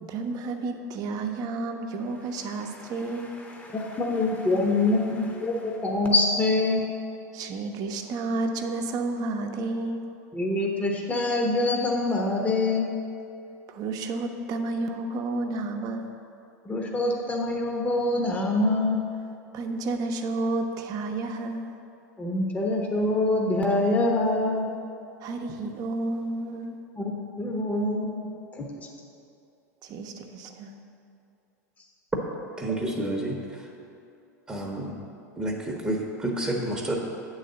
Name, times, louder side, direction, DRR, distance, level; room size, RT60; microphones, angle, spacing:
voice 1, 0.0-3.5 7.3-10.1 13.7-16.1 19.5-21.7 25.2-26.8 29.8-30.7, right 2 dB, 45° right, 5 dB, 0.8 m, -31 dB
voice 2, 3.7-6.8 10.3-12.9 16.6-19.0 22.2-24.7 27.0-27.1 27.4-28.1 28.6-28.7, left 2 dB, 15° left, 0 dB, 1.0 m, -25 dB
voice 3, 32.6-33.4 34.5-35.0 35.4-36.9, right 1 dB, 10° right, -1 dB, 1.0 m, -29 dB
8.4 x 4.0 x 6.7 m, 2.6 s
hypercardioid pair, 95°, 9 cm